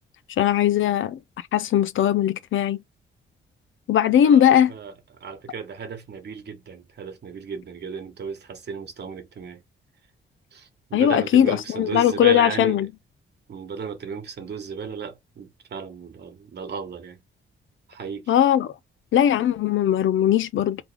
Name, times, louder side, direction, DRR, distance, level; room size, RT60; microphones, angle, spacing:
voice 1, 0.4-2.8 3.9-4.7 10.9-12.9 18.3-18.7 19.1-20.9, left 10 dB, 70° left, 0.5 m, -19 dB
voice 2, 5.2-9.6 10.5-12.9 13.5-17.2 17.9-18.3, right 5 dB, 50° right, 1.4 m, -35 dB
3.7 x 3.2 x 3.4 m
cardioid pair, 125°, 21 cm